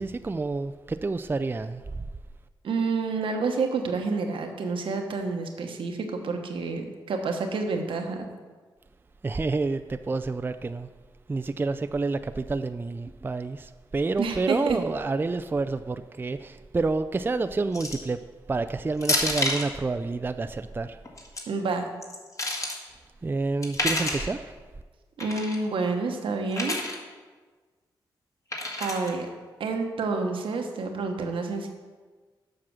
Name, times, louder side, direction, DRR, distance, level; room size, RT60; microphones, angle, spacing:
voice 1, 0.0-1.9 9.2-10.9 11.3-18.2 18.5-21.0 23.2-24.5, right 3 dB, 25° right, 0.4 m, -29 dB
voice 2, 2.6-8.3 14.2-14.8 21.5-21.9 25.2-26.8 28.8-29.3 29.6-31.7, right 4 dB, 80° right, 1.1 m, -29 dB
sound 1, 17.7-18.1 19.0-19.7 21.0-21.4 22.0-22.8 23.6-24.3 25.2-25.6 26.5-27.0 28.5-29.1, left 2 dB, 40° left, 1.9 m, -29 dB
7.5 x 5.9 x 6.2 m
cardioid pair, 60°, 9 cm